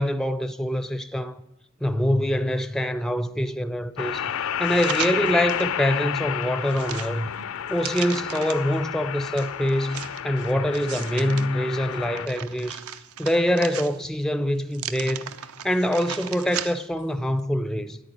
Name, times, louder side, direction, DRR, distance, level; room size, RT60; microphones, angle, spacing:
voice 1, 0.0-1.4 1.8-7.3 7.7-12.8 13.2-15.3 15.6-18.0, equal, ahead, 0.4 m, -25 dB
sound 1, 4.0-12.3, left 9 dB, 65° left, 0.4 m, -31 dB
sound 2, 4.6-5.7 6.2-8.8 9.4-11.5 11.9-14.2 14.7-17.0 17.4-17.5, right 9 dB, 80° right, 0.7 m, -37 dB
10.0 x 9.0 x 9.9 m
head